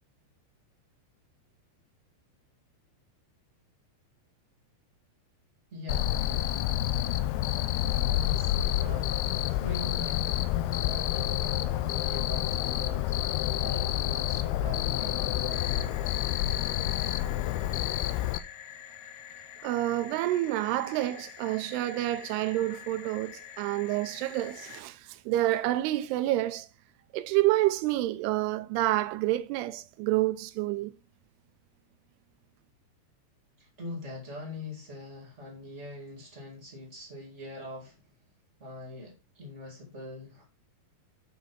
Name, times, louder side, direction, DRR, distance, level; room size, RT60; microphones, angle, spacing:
voice 1, 5.7-6.8 7.3-15.8 33.6-38.1 38.6-40.4, left 2 dB, 35° right, 1.0 m, -43 dB
Cricket, 5.9-18.4, left 13 dB, 90° left, 2.2 m, -28 dB
sound 1, 15.5-24.8, left 9 dB, 70° left, 3.1 m, -47 dB
voice 2, 19.6-26.7 27.1-30.9, right 15 dB, 85° right, 2.4 m, -28 dB
8.6 x 5.6 x 4.3 m
omnidirectional pair, 5.2 m